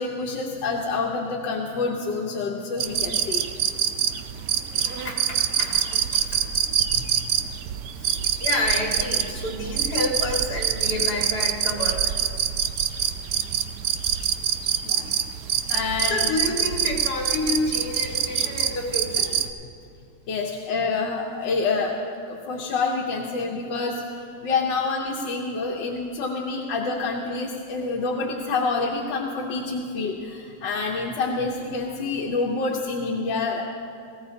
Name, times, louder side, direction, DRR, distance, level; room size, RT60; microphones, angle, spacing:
voice 1, 0.0-3.4 14.8-15.1 15.7-16.2 20.3-21.9 22.3-33.6, left 4 dB, 85° left, -1 dB, 1.6 m, -27 dB
sound 1, 2.8-19.5, right 9 dB, 70° right, 1.0 m, -25 dB
voice 2, 4.9-6.5 6.9-7.1 8.0-12.1 14.4-14.6 16.0-19.3, left 2 dB, 60° left, -2 dB, 2.7 m, -29 dB
19.0 x 16.5 x 2.8 m, 2.4 s
omnidirectional pair, 1.9 m